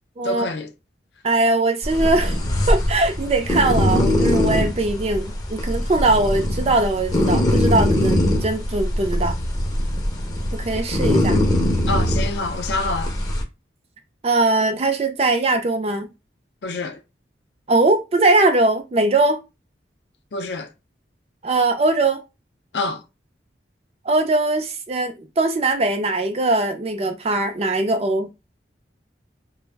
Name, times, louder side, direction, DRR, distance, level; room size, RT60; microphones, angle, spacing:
voice 1, 0.2-0.7 11.9-13.1 16.6-17.0 20.3-20.7 22.7-23.0, left 2 dB, 70° left, 0.5 m, -26 dB
voice 2, 1.2-2.4 2.7-9.4 10.5-11.4 14.2-16.1 17.7-19.4 21.4-22.2 24.0-28.3, right 2 dB, 35° right, 0.4 m, -20 dB
sound 1, 1.8-13.4, left 1 dB, 20° left, 0.5 m, -22 dB
2.4 x 2.0 x 3.3 m
head